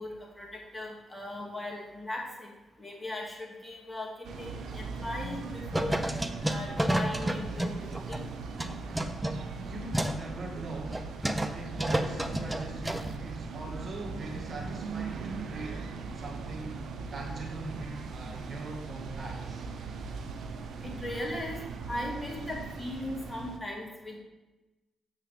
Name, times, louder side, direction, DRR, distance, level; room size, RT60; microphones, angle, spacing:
voice 1, 0.0-2.5 2.8-6.0 6.4-8.3 20.8-21.6 21.9-24.2, left 1 dB, 10° left, -2 dB, 2.0 m, -38 dB
sound 1, 4.2-23.6, right 4 dB, 70° right, 0.7 m, -39 dB
sound 2, 5.0-5.4 5.7-8.2 8.6-10.2 10.6-10.7 10.9-11.5 11.8-13.1, right 1 dB, 10° right, 0.6 m, -30 dB
voice 2, 9.5-11.0 11.5-19.7, right 2 dB, 50° right, 0 dB, 1.6 m, -41 dB
7.4 x 7.2 x 3.4 m, 1.1 s
supercardioid pair, 60°, 0 cm